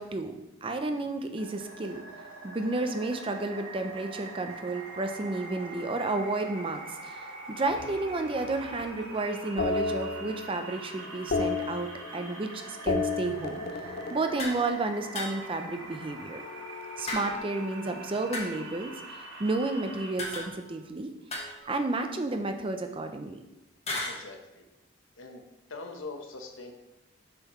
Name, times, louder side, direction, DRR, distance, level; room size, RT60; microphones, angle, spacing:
voice 1, 0.0-2.0 2.4-13.6 14.1-16.4 17.0-21.1 21.7-23.4, right 2 dB, 25° right, 6 dB, 0.5 m, -32 dB
sound 1, 1.4-20.1, right 2 dB, 85° right, 1.3 m, -44 dB
sound 2, 7.7-9.0 9.6-10.7 11.0-12.4 12.7-15.1 16.3-18.0, left 4 dB, 50° left, 0.4 m, -34 dB
sound 3, 14.4-14.6 15.2-15.6 17.1-17.6 18.3-18.8 20.2-20.8 21.3-22.1 23.9-24.2, left 1 dB, 30° left, 1.2 m, -36 dB
voice 2, 24.0-24.7 25.2-25.4 25.7-26.7, left 3 dB, 75° left, 4 dB, 0.9 m, -42 dB
6.8 x 5.6 x 3.1 m, 0.94 s
head